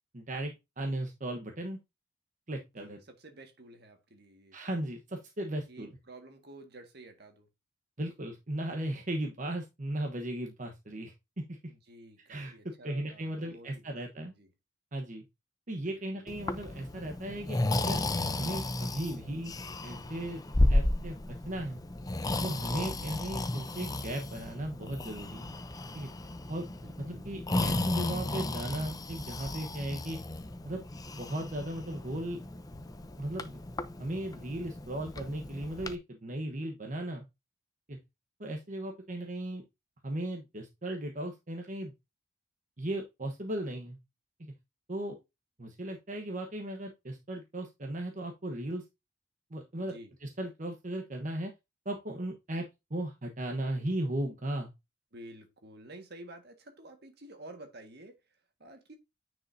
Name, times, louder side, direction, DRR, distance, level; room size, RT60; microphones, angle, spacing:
voice 1, 0.1-1.8 2.5-3.0 4.5-6.0 8.0-11.1 11.5-11.6 12.3-12.5 12.8-14.3 14.9-15.2 15.7-18.0 18.4-19.5 19.8-20.4 20.7-21.1 21.5-21.8 22.4-25.5 25.9-26.1 26.5-26.7 27.0-30.2 30.6-30.8 31.2-32.4 33.2-33.6 34.0-37.2 37.9-38.0 38.4-39.6 40.0-41.9 42.8-44.0 44.4-44.5 44.9-45.2 45.6-48.8 49.5-49.9 50.2-51.5 51.8-52.6 52.9-54.7, right 1 dB, 45° right, 1.1 m, -36 dB
voice 2, 2.8-4.6 5.7-7.5 11.7-14.0 14.3-14.5 15.8-16.3 26.8-27.3 49.8-50.1 55.1-59.0, right 1 dB, 60° right, 1.7 m, -51 dB
Breathing, 16.3-36.0, left 2 dB, 20° left, 0.6 m, -34 dB
9.6 x 5.2 x 2.7 m
head